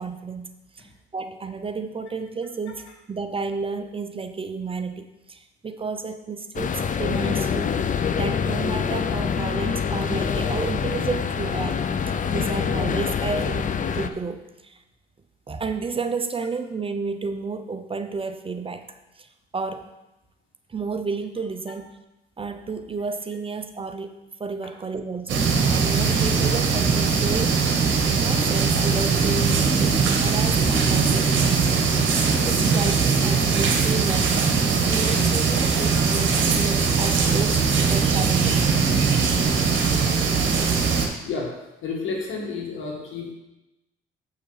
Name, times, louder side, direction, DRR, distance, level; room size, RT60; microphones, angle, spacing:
voice 1, 0.0-7.7 8.1-14.8 15.5-19.9 20.7-21.9 22.4-27.8 28.2-31.8 32.4-34.4 34.9-38.7, right 4 dB, 25° right, 8 dB, 0.7 m, -32 dB
sound 1, 6.5-14.1, left 6 dB, 40° left, 0.6 m, -25 dB
sound 2, 25.3-41.1, right 5 dB, 75° right, 1.3 m, -21 dB
voice 2, 41.8-43.3, left 4 dB, 75° left, -1 dB, 2.2 m, -30 dB
8.2 x 5.6 x 5.0 m, 0.97 s
cardioid pair, 90°, 20 cm